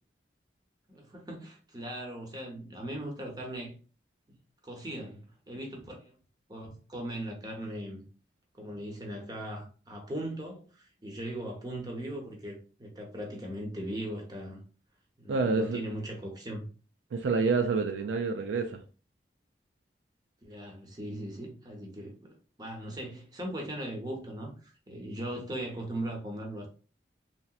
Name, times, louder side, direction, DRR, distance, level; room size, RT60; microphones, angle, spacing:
voice 1, 0.9-3.7 4.3-4.4 4.6-6.2 6.5-8.0 8.6-14.6 15.2-16.6 20.4-26.7, right 1 dB, 20° right, 0.7 m, -39 dB
voice 2, 15.3-15.8 17.1-18.8, right 4 dB, 85° right, 0.4 m, -28 dB
3.0 x 2.8 x 2.3 m
head